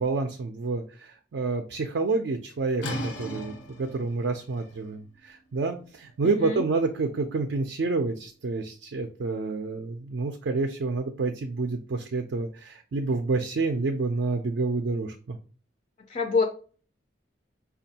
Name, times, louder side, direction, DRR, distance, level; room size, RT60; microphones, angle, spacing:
voice 1, 0.0-3.5 3.8-15.4, right 3 dB, 65° right, 6 dB, 0.4 m, -28 dB
sound 1, 2.8-8.4, equal, 85° left, 0.9 m, -40 dB
voice 2, 6.2-6.6 16.1-16.4, left 4 dB, 40° left, 4 dB, 0.3 m, -26 dB
5.1 x 2.3 x 2.7 m, 0.40 s
head